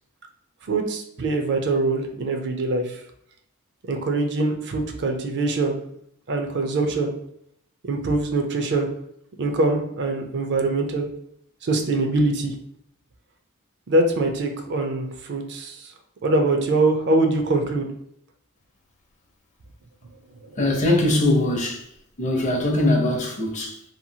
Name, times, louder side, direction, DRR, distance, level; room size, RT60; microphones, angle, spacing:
voice 1, 0.7-3.0 3.9-5.8 6.3-7.1 7.9-8.9 9.4-11.1 11.6-12.5 13.9-15.9 16.2-17.9, right 2 dB, 55° right, 0.4 m, -23 dB
voice 2, 20.6-21.9 22.2-23.8, left 1 dB, 35° left, 0.5 m, -21 dB
2.8 x 2.3 x 2.7 m
head